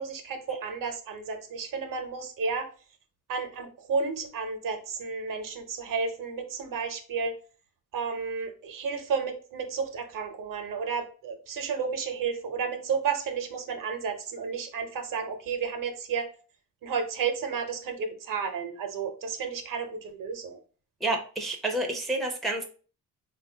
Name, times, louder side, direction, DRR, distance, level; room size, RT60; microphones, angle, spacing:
voice 1, 0.0-2.7 3.3-7.3 7.9-16.3 16.8-20.6, right 5 dB, 70° right, 6 dB, 0.7 m, -32 dB
voice 2, 21.0-22.6, right 2 dB, ahead, 2 dB, 0.4 m, -29 dB
3.9 x 2.3 x 2.7 m, 0.38 s
wide cardioid pair, 160°, 34 cm